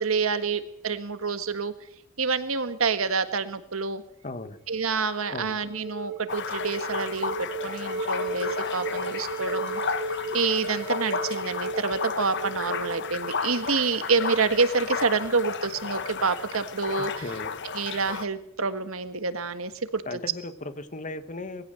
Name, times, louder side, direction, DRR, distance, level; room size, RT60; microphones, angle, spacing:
voice 1, 0.0-1.7 2.2-4.0 4.7-9.8 10.3-17.2 17.6-20.0, right 4 dB, 85° right, 10 dB, 1.7 m, -27 dB
voice 2, 4.2-4.6 5.3-5.6 17.2-17.5 20.0-21.7, left 2 dB, 40° left, 11 dB, 1.5 m, -36 dB
sound 1, 4.8-14.0, right 3 dB, 50° right, 4.2 m, -35 dB
sound 2, 6.3-18.3, left 5 dB, 60° left, 1.2 m, -33 dB
21.0 x 16.0 x 7.8 m, 0.73 s
head